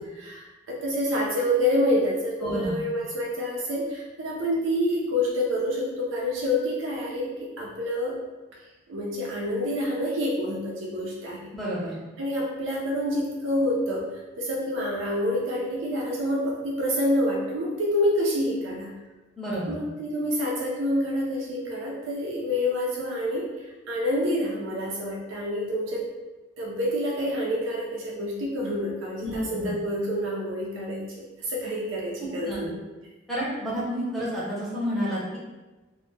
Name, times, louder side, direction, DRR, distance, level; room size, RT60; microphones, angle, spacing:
voice 1, 0.2-8.2 8.9-11.4 12.2-14.1 14.4-18.9 19.7-23.5 23.9-26.0 26.6-32.7, left 1 dB, 90° right, -3 dB, 0.4 m, -27 dB
voice 2, 2.4-2.8 11.5-11.9 19.4-19.7 29.2-29.7 32.2-32.7 33.3-35.4, equal, ahead, -8 dB, 0.6 m, -30 dB
2.1 x 2.0 x 3.1 m, 1.2 s
head